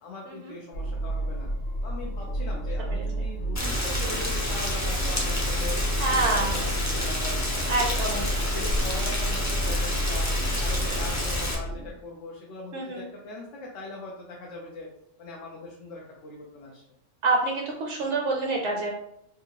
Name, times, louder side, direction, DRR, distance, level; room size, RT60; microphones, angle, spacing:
voice 1, 0.0-1.5 1.8-5.8 6.0-8.2 8.5-10.3 10.6-14.9 15.2-16.8, left 2 dB, 70° left, -2 dB, 0.9 m, -41 dB
sound 1, 0.7-11.9, equal, 45° left, 1.0 m, -30 dB
voice 2, 2.9-3.3 6.0-6.6 7.7-8.3 12.7-13.0 17.2-18.9, right 3 dB, 65° right, 0 dB, 0.8 m, -27 dB
Rain, 3.6-11.6, left 1 dB, 20° left, 0.4 m, -29 dB
3.8 x 2.4 x 2.9 m, 0.78 s
omnidirectional pair, 1.3 m